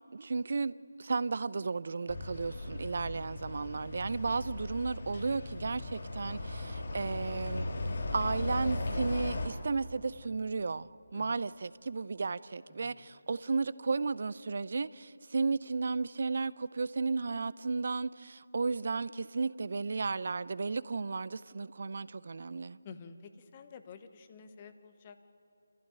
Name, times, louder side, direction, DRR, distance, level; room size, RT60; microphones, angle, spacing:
voice 1, 0.1-0.7 1.0-7.7 8.1-22.8, right 4 dB, 55° right, 0.6 m, -34 dB
sound 1, 2.1-9.5, left 2 dB, 50° left, 4.0 m, -37 dB
voice 2, 11.1-11.4 12.7-13.1 22.8-25.2, left 5 dB, 25° left, 1.3 m, -51 dB
27.0 x 15.0 x 9.0 m
figure-of-eight pair, 160°, 0 cm